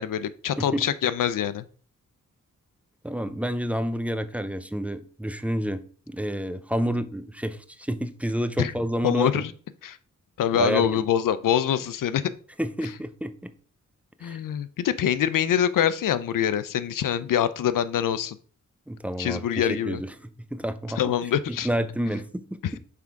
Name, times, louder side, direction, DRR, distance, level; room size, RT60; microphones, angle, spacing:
voice 1, 0.0-1.6 8.6-8.7 9.0-9.5 9.8-10.0 10.4-12.2 14.2-18.4 19.2-20.0 21.0-21.7, left 9 dB, 80° left, 0.5 m, -24 dB
voice 2, 3.0-9.4 10.5-11.0 12.6-13.5 14.2-14.4 18.9-21.0 21.5-22.6, equal, 5° right, 0.5 m, -29 dB
5.9 x 3.6 x 4.5 m
cardioid pair, 80°, 32 cm